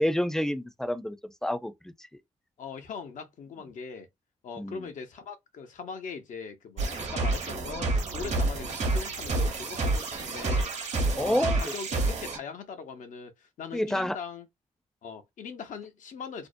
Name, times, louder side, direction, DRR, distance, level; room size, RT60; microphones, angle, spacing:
voice 1, 0.0-2.1 4.6-4.9 11.2-11.7 13.7-14.1, equal, 5° left, 0.5 m, -29 dB
voice 2, 2.6-4.1 4.4-10.7 11.1-14.5 15.0-16.5, left 5 dB, 80° left, 0.6 m, -40 dB
sound 1, 6.8-12.4, right 2 dB, 60° right, 0.8 m, -29 dB
2.5 x 2.0 x 2.5 m
cardioid pair, 85°, 13 cm